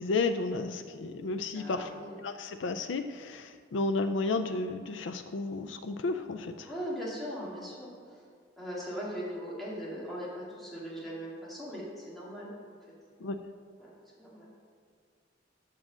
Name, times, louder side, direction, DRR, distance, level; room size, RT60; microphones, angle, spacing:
voice 1, 0.0-1.9 2.2-6.7 13.2-13.4, left 3 dB, 85° left, 8 dB, 0.4 m, -32 dB
voice 2, 1.5-2.2 6.6-7.9 8.6-12.5 13.8-13.9 14.2-14.5, equal, ahead, -7 dB, 2.3 m, -39 dB
7.5 x 6.2 x 6.2 m, 2.1 s
head